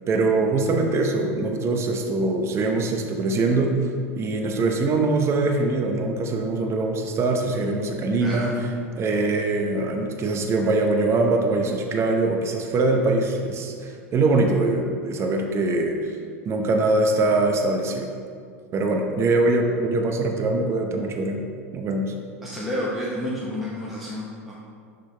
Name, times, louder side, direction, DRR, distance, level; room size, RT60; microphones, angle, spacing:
voice 1, 0.1-3.7 4.2-8.7 9.0-16.1 16.4-18.1 18.7-21.4 21.7-22.1, right 2 dB, 35° right, 3 dB, 0.8 m, -23 dB
voice 2, 8.2-8.6 22.4-24.6, equal, ahead, -7 dB, 1.0 m, -30 dB
9.8 x 3.9 x 3.3 m, 2.2 s
hypercardioid pair, 95°, 8 cm